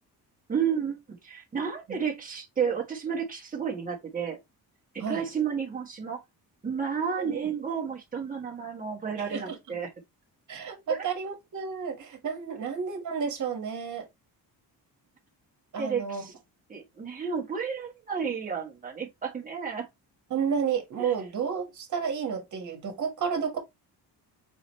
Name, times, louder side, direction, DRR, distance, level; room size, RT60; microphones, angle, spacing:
voice 1, 0.5-4.4 4.9-6.2 6.6-9.9 10.9-11.0 15.8-16.3 16.7-19.9 21.0-21.1, right 6 dB, 20° right, 1.3 m, -32 dB
voice 2, 9.2-9.6 10.5-14.1 15.7-16.3 20.3-23.6, right 6 dB, 45° right, 1.6 m, -31 dB
4.2 x 3.9 x 3.1 m
cardioid pair, 180°, 40 cm